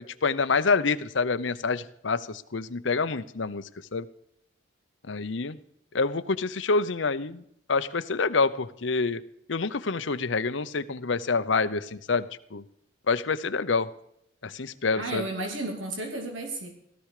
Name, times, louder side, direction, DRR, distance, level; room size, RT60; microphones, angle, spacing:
voice 1, 0.0-3.6 3.9-4.0 5.1-5.6 5.9-7.4 7.7-9.2 9.5-12.6 13.1-13.9 14.4-15.2, left 4 dB, 70° left, 12 dB, 0.8 m, -27 dB
voice 2, 15.0-16.7, right 2 dB, 90° right, 3 dB, 3.0 m, -33 dB
17.0 x 13.0 x 4.9 m, 0.72 s
head